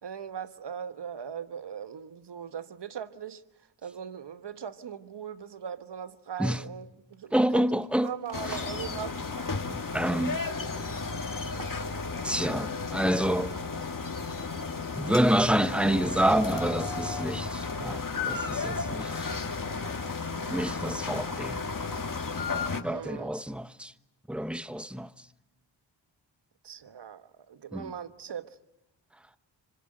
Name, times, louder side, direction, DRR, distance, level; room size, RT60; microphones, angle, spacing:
voice 1, 0.0-3.4 3.8-7.7 8.0-9.2 22.8-23.3 26.6-28.6, right 8 dB, 60° right, 1.3 m, -39 dB
sound 1, 7.1-7.5 7.7-8.9 9.2-9.8 10.2-12.6, right 2 dB, 45° right, 6.4 m, -49 dB
voice 2, 7.3-8.1 8.5-8.6 9.7-10.4 12.2-13.6 14.9-19.3 20.5-21.6 22.8-23.9 24.3-25.1 27.7-27.9, right 1 dB, ahead, 1.0 m, -28 dB
sound 2, 8.3-22.8, left 4 dB, 45° left, 2.3 m, -33 dB
25.5 x 25.0 x 7.8 m
cardioid pair, 50°, 46 cm